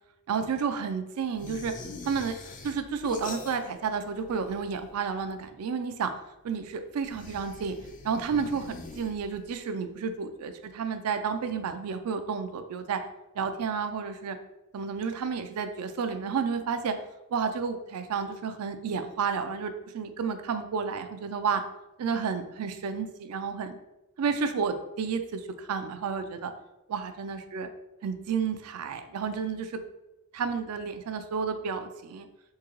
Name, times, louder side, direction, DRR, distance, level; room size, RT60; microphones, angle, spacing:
voice 1, 0.3-1.7 2.0-2.4 2.6-6.1 6.4-7.7 8.0-13.0 13.4-14.4 14.7-17.0 17.3-21.6 22.0-23.8 24.2-26.5 26.9-27.7 28.0-29.8 30.3-32.3, right 6 dB, 75° right, 9 dB, 0.4 m, -31 dB
sound 1, 1.4-4.0 4.2-5.0 7.0-9.5, left 3 dB, 35° left, 0.3 m, -43 dB
3.7 x 2.7 x 3.0 m, 0.96 s
head